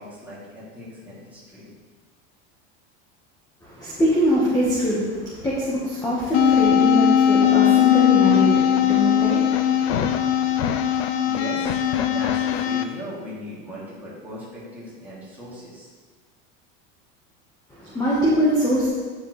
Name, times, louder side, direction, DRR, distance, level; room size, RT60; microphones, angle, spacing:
voice 1, 0.0-1.7 11.2-15.9, equal, 5° right, -9 dB, 2.8 m, -38 dB
voice 2, 3.6-10.6 17.7-18.9, equal, 10° left, -7 dB, 1.4 m, -23 dB
sound 1, 6.3-12.8, left 10 dB, 85° left, 0.7 m, -19 dB
9.7 x 7.1 x 3.3 m, 1.4 s
supercardioid pair, 160°, 31 cm